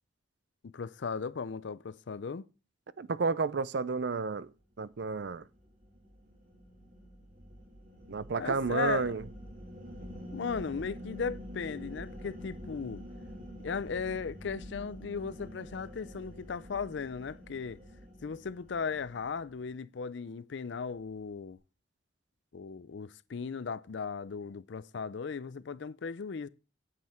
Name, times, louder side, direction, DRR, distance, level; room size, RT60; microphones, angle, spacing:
voice 1, 0.6-2.4 8.4-9.1 10.3-13.0 13.6-17.8 18.2-21.6 22.5-26.5, left 5 dB, 65° left, 0.5 m, -37 dB
voice 2, 3.0-4.5 4.8-5.4 8.1-9.2, right 4 dB, 60° right, 0.5 m, -31 dB
sound 1, 5.2-19.6, equal, 45° right, 3.0 m, -47 dB
9.4 x 7.7 x 4.4 m
head